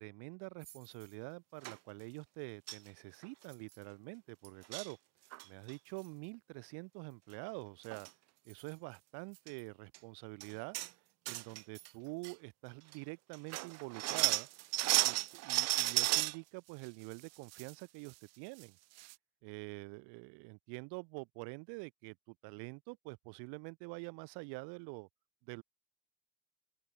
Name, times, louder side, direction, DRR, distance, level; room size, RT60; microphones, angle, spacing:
voice 1, 0.0-5.0 5.4-8.1 8.5-10.8 11.3-14.5 15.0-15.2 15.5-18.8 19.4-25.1 25.4-25.6, right 32 dB, 85° right, 3.7 m, -46 dB
sound 1, 0.6-1.0 1.6-1.8 2.7-2.9 3.2-3.3 3.5-3.8 4.4-4.9 5.3-5.7 7.5-7.6 7.9-8.1 8.5-8.6 9.4-9.5 9.9-10.0 10.4-10.9 11.3-11.9 12.2-12.3 12.9-13.0 13.3-16.4 16.8-17.7 18.1-18.2 18.6-18.7 19.0-19.1, right 19 dB, 40° right, 0.5 m, -34 dB
open air
cardioid pair, 175°, 39 cm